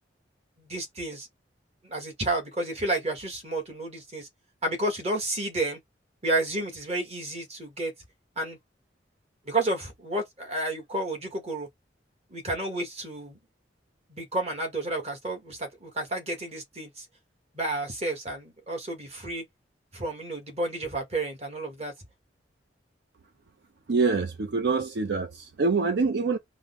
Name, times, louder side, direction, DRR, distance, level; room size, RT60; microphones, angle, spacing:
voice 1, 0.6-1.3 1.8-4.3 4.6-5.8 6.2-7.9 8.4-8.6 9.4-11.7 12.3-13.4 14.1-17.0 17.5-19.4 19.9-21.9, right 2 dB, 35° right, 1.4 m, -31 dB
voice 2, 23.9-26.4, right 4 dB, 65° right, 0.5 m, -25 dB
3.7 x 2.1 x 3.6 m
head